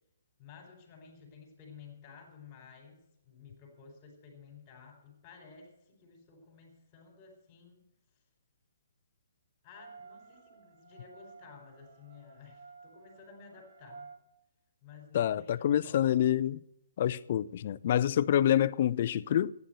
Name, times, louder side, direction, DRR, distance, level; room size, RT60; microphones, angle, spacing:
voice 1, 0.4-7.8 9.6-14.1 14.8-16.3, left 5 dB, 30° left, 4.1 m, -54 dB
sound 1, 9.7-14.2, right 5 dB, 65° right, 2.2 m, -53 dB
voice 2, 15.1-16.6 17.0-19.5, left 11 dB, 50° left, 0.5 m, -27 dB
11.5 x 9.6 x 7.8 m
hypercardioid pair, 140°, 0 cm